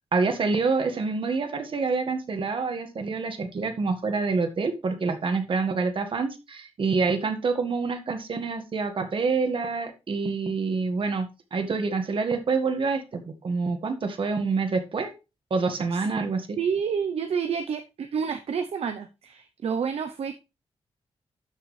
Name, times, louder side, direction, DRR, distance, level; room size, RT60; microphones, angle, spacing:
voice 1, 0.1-15.1 15.5-16.6, right 4 dB, 50° right, 6 dB, 1.8 m, -27 dB
voice 2, 16.6-20.3, right 6 dB, 65° right, 8 dB, 0.8 m, -29 dB
12.5 x 6.5 x 3.3 m, 0.27 s
wide cardioid pair, 165°, 11 cm